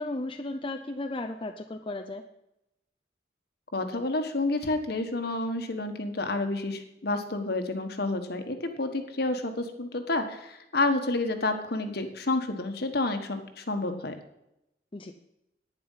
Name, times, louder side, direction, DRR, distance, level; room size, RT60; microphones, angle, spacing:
voice 1, 0.0-2.3 14.9-15.1, left 2 dB, 30° left, 4 dB, 0.6 m, -35 dB
voice 2, 3.7-14.1, left 2 dB, 60° left, 7 dB, 1.5 m, -29 dB
11.0 x 9.8 x 5.7 m, 0.85 s
head